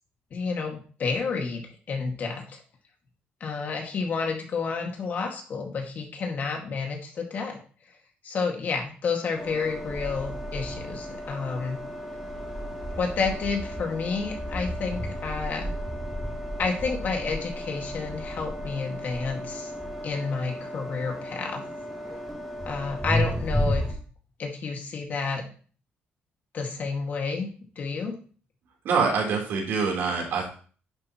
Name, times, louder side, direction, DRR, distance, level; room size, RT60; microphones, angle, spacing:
voice 1, 0.3-1.6 1.9-2.6 3.4-7.6 8.2-11.8 13.0-15.7 16.6-19.7 20.0-21.6 22.7-23.8 24.4-25.4 26.5-27.5 27.8-28.1, left 4 dB, 45° left, 2 dB, 2.2 m, -30 dB
sound 1, 9.3-23.9, equal, ahead, 3.1 m, -33 dB
voice 2, 28.8-30.6, right 5 dB, 70° right, -1 dB, 4.0 m, -25 dB
10.5 x 7.8 x 3.2 m, 0.41 s
cardioid pair, 145°, 4 cm